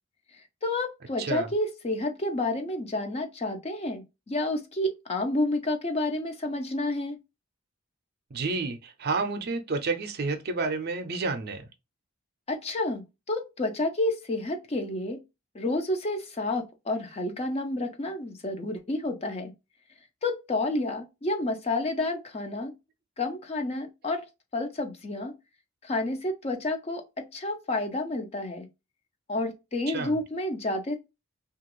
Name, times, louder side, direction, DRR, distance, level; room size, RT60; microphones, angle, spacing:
voice 1, 0.6-7.2 12.5-15.2 15.5-19.5 20.2-22.7 23.2-24.3 24.5-25.3 25.8-28.7 29.3-31.0, left 2 dB, 30° left, 0.5 m, -30 dB
voice 2, 1.2-1.5 8.3-11.7 29.9-30.1, right 3 dB, 45° right, 0.5 m, -30 dB
2.9 x 2.3 x 2.9 m
head